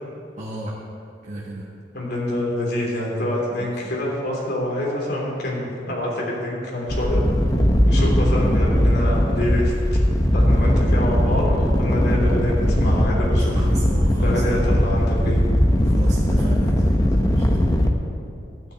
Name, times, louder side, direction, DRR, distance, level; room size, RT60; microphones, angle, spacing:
voice 1, 0.4-0.8 1.2-1.7 3.6-3.7 12.9-14.8 15.8-17.0 17.3-17.6, right 1 dB, 40° right, -4 dB, 1.4 m, -34 dB
voice 2, 1.9-7.2 7.8-10.0 10.3-13.6 14.2-15.4, left 1 dB, 60° left, -3 dB, 3.2 m, -26 dB
Fan Blowing, 6.9-17.9, equal, 20° left, 0.9 m, -19 dB
12.5 x 6.5 x 8.7 m, 2.6 s
head